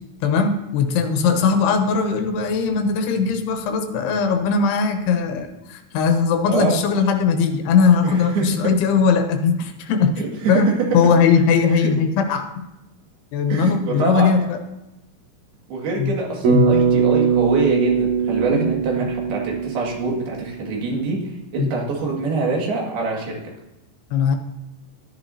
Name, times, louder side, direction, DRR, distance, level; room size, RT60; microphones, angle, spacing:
voice 1, 0.2-10.2 10.5-10.7 10.9-12.5 13.3-14.6 16.0-16.2 16.5-16.7 18.5-18.7 21.6-21.7 24.1-24.4, left 5 dB, 80° left, 5 dB, 2.9 m, -19 dB
voice 2, 6.5-6.8 8.0-8.7 10.2-10.3 10.5-10.6 13.5-14.3 15.7-23.5, right 3 dB, 70° right, -2 dB, 3.9 m, -25 dB
Bass guitar, 16.4-20.8, right 6 dB, 50° right, 3.1 m, -21 dB
14.0 x 10.5 x 2.7 m, 0.94 s
omnidirectional pair, 4.7 m